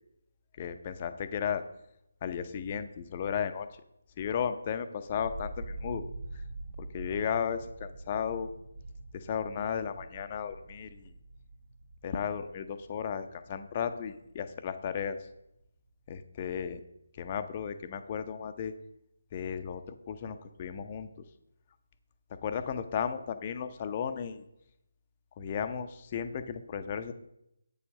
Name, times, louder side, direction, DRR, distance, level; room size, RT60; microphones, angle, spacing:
voice 1, 0.6-1.6 2.2-3.7 4.2-6.0 6.8-8.5 9.1-11.1 12.0-15.2 16.1-16.8 17.2-18.7 19.3-19.8 20.1-21.1 22.4-24.4 25.4-27.1, left 7 dB, 25° left, 9 dB, 0.6 m, -34 dB
sound 1, 5.1-15.1 15.4-16.1, right 2 dB, 60° right, 2.0 m, -45 dB
8.5 x 7.1 x 5.2 m, 0.81 s
figure-of-eight pair, 150°, 0 cm